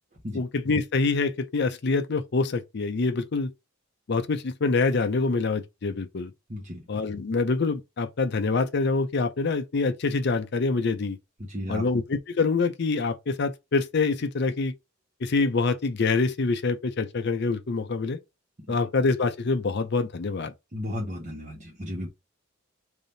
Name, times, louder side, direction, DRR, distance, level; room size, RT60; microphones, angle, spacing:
voice 1, 0.3-3.5 4.1-6.3 6.9-11.2 11.7-14.7 15.2-18.2 18.7-20.5, left 3 dB, 55° left, 0.5 m, -25 dB
voice 2, 6.5-6.8 11.4-11.8 18.7-18.8 20.7-22.1, left 1 dB, 35° right, 1.0 m, -34 dB
3.4 x 2.7 x 3.9 m
head